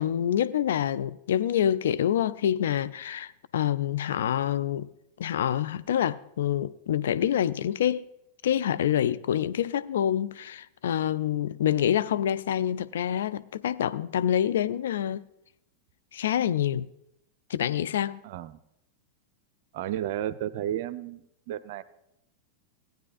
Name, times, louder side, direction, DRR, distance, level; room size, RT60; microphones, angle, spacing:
voice 1, 0.0-4.9 5.2-8.0 8.4-15.2 16.1-16.9 17.5-18.2, left 10 dB, 60° left, 0.3 m, -26 dB
voice 2, 18.2-18.6 19.7-21.8, right 11 dB, 50° right, 0.4 m, -33 dB
17.5 x 9.0 x 2.4 m
figure-of-eight pair, 90°, 0 cm